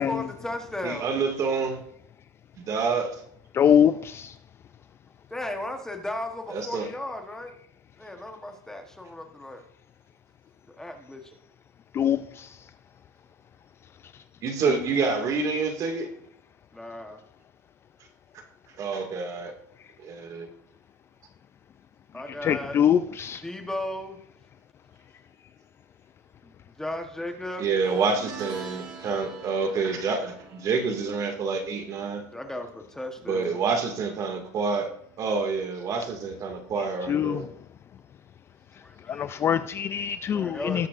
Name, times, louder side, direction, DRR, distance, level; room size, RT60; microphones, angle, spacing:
voice 1, 0.0-1.1 5.3-7.5 8.0-9.6 10.7-11.4 16.7-17.2 22.1-22.8 23.2-24.2 26.4-27.7 32.3-33.6 38.8-39.4 40.3-40.9, left 1 dB, 5° left, 1.0 m, -36 dB
voice 2, 0.8-1.8 2.6-3.2 6.5-6.9 14.4-16.1 18.8-19.5 20.0-20.5 27.6-32.2 33.3-34.9 35.2-37.4, right 4 dB, 40° right, 2.0 m, -27 dB
voice 3, 3.5-4.3 11.9-12.5 22.4-23.4 37.1-37.4 39.1-40.9, left 9 dB, 30° left, 0.4 m, -23 dB
sound 1, 27.8-33.2 33.5-33.9 35.1-35.2, right 4 dB, 55° right, 4.3 m, -44 dB
18.5 x 7.5 x 2.5 m
supercardioid pair, 135°, 9 cm